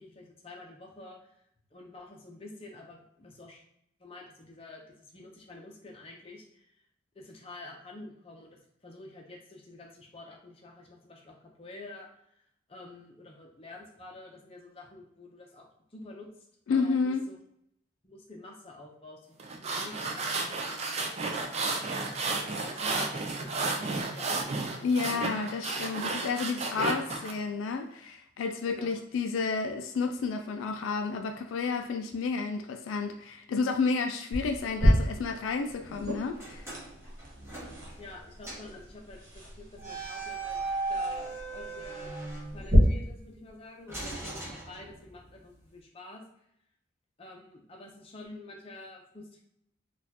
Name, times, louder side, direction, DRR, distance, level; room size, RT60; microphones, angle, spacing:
voice 1, 0.0-1.3 1.7-3.6 4.0-6.8 7.1-16.3 16.7-17.4 18.0-21.8 22.6-25.4 28.6-29.0 38.0-46.2 47.2-49.4, left 2 dB, 30° left, 0.6 m, -49 dB
voice 2, 16.7-17.2 24.8-36.7, left 4 dB, 80° left, 0.3 m, -31 dB
sound 1, 19.4-27.3, right 3 dB, 35° right, 0.4 m, -32 dB
sound 2, 34.3-42.8, equal, 60° right, 1.2 m, -33 dB
sound 3, 36.3-38.2 38.4-38.8 39.8-43.0 43.9-45.3, right 3 dB, 15° right, 0.9 m, -38 dB
4.1 x 2.4 x 2.8 m
head